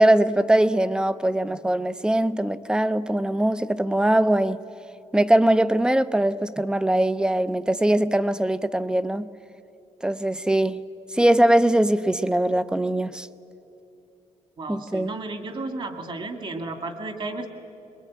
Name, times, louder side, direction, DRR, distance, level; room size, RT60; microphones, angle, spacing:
voice 1, 0.0-4.6 5.1-9.3 10.0-10.8 11.1-13.3 14.7-15.1, right 1 dB, 5° right, 14 dB, 0.6 m, -21 dB
voice 2, 14.6-17.5, right 2 dB, 45° right, 7 dB, 2.1 m, -33 dB
22.5 x 21.5 x 9.4 m, 2.8 s
wide cardioid pair, 155°, 12 cm